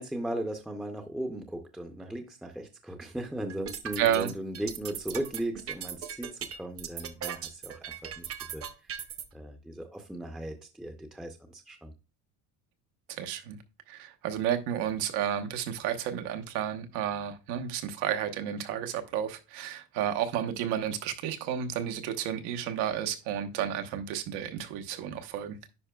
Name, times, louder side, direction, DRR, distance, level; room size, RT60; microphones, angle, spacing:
voice 1, 0.0-8.9 9.3-11.9, right 1 dB, ahead, 0.5 m, -37 dB
sound 1, 3.5-9.2, right 9 dB, 35° right, 0.7 m, -38 dB
voice 2, 4.0-4.3 13.1-13.6 13.9-25.6, right 9 dB, 90° right, 1.2 m, -31 dB
10.0 x 5.0 x 2.3 m
cardioid pair, 160°, 38 cm